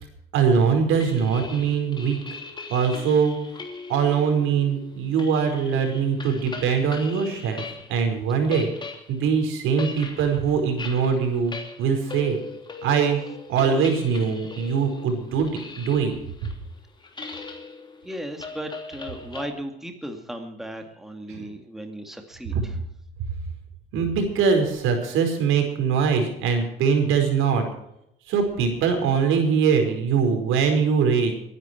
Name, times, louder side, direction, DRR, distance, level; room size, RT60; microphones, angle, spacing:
voice 1, 0.3-2.2 2.7-3.4 3.9-7.6 7.9-8.7 9.1-12.4 12.8-13.2 13.5-16.1 21.3-21.5 22.5-22.6 23.9-27.6 28.3-31.3, right 6 dB, 80° right, 5 dB, 4.9 m, -22 dB
sound 1, 1.0-8.0 8.3-19.5, left 4 dB, 20° left, 3.1 m, -40 dB
voice 2, 18.0-22.8, equal, ahead, 4 dB, 2.3 m, -36 dB
22.0 x 11.0 x 4.6 m, 0.78 s
cardioid pair, 125°, 21 cm